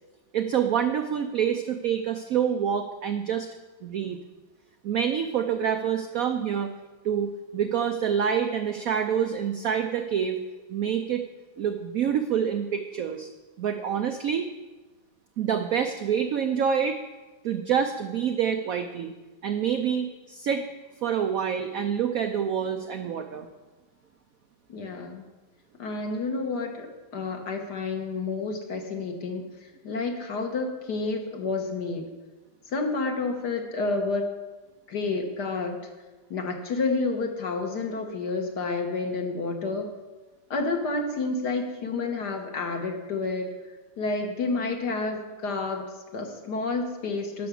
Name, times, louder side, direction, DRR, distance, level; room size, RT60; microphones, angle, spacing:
voice 1, 0.3-3.5 3.8-4.2 4.8-6.7 7.0-10.4 10.7-11.2 11.6-13.3 13.6-14.5 15.4-17.0 17.4-19.1 19.4-20.7 21.0-23.5, right 8 dB, 75° right, 7 dB, 0.8 m, -27 dB
voice 2, 24.7-25.3 25.8-29.5 29.8-32.1 32.7-34.3 34.9-35.8 36.3-39.9 40.5-43.5 44.0-47.5, left 3 dB, 60° left, 3 dB, 1.7 m, -30 dB
11.5 x 6.0 x 6.9 m, 1.2 s
omnidirectional pair, 2.2 m